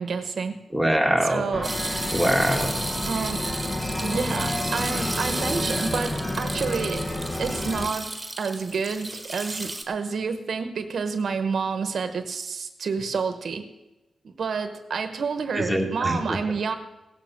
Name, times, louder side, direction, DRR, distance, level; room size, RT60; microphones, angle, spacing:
voice 1, 0.0-0.5 1.3-1.7 3.0-3.4 4.0-7.0 7.4-8.1 8.4-13.7 14.2-16.7, right 5 dB, 60° right, 8 dB, 0.9 m, -29 dB
voice 2, 0.7-1.4 2.1-2.8 15.5-16.4, equal, 5° left, 1 dB, 2.1 m, -23 dB
sound 1, 1.5-7.9, left 1 dB, 25° left, 1.0 m, -30 dB
sound 2, 1.6-9.8, right 2 dB, 10° right, 1.6 m, -33 dB
17.0 x 7.4 x 7.2 m, 1.0 s
wide cardioid pair, 125°, 0 cm